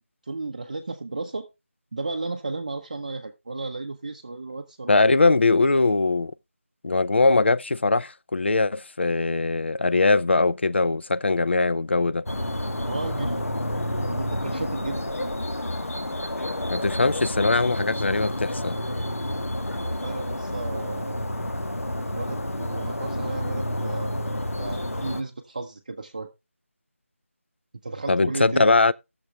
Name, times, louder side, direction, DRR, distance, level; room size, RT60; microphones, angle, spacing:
voice 1, 0.3-1.5 1.9-5.2 12.7-13.4 14.1-15.1 19.7-21.3 22.1-26.3 27.8-28.7, right 3 dB, 30° right, 0.6 m, -34 dB
voice 2, 4.9-6.3 6.8-12.2 16.7-18.8 28.1-28.9, left 3 dB, 50° left, 0.4 m, -21 dB
sound 1, 12.3-25.2, left 1 dB, 90° left, 1.3 m, -29 dB
18.5 x 6.8 x 2.3 m
figure-of-eight pair, 170°, 8 cm